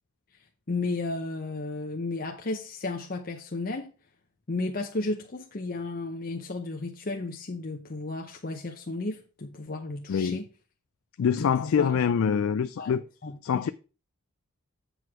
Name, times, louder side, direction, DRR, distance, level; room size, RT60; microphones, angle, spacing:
voice 1, 0.7-3.9 4.5-10.5 11.3-12.0 12.8-12.9 13.2-13.7, left 2 dB, 40° left, 0.7 m, -33 dB
voice 2, 10.1-10.4 11.2-13.0 13.4-13.7, left 7 dB, 65° left, 0.3 m, -25 dB
7.8 x 4.7 x 4.8 m
head